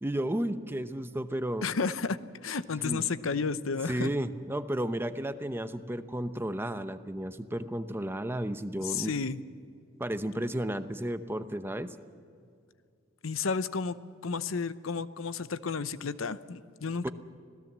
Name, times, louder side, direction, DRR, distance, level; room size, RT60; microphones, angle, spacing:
voice 1, 0.0-1.7 2.8-3.0 3.9-9.1 10.0-12.0 17.0-17.1, right 1 dB, 10° right, 10 dB, 0.8 m, -33 dB
voice 2, 1.6-4.1 8.8-9.4 13.2-14.0 14.2-17.1, left 5 dB, 80° left, 14 dB, 0.8 m, -32 dB
26.0 x 17.0 x 7.4 m, 2.3 s
head